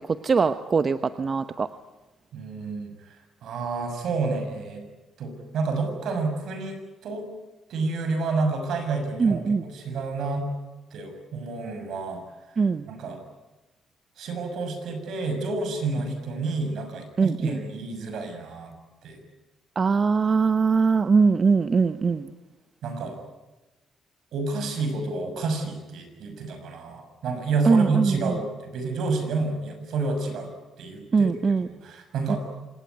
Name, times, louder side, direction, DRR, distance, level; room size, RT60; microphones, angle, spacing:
voice 1, 0.1-1.7 9.2-9.6 12.6-12.8 17.2-17.6 19.8-22.3 27.6-28.4 31.1-31.7 32.3-32.4, right 5 dB, 40° right, 11 dB, 1.0 m, -21 dB
voice 2, 2.3-4.8 5.2-7.2 7.7-10.5 10.9-12.2 12.9-13.2 14.2-18.7 19.0-19.2 22.8-23.2 24.3-30.5 30.8-31.3 31.7-32.4, right 3 dB, 75° right, 6 dB, 6.5 m, -29 dB
26.5 x 19.5 x 9.5 m, 1.1 s
cardioid pair, 90°, 0 cm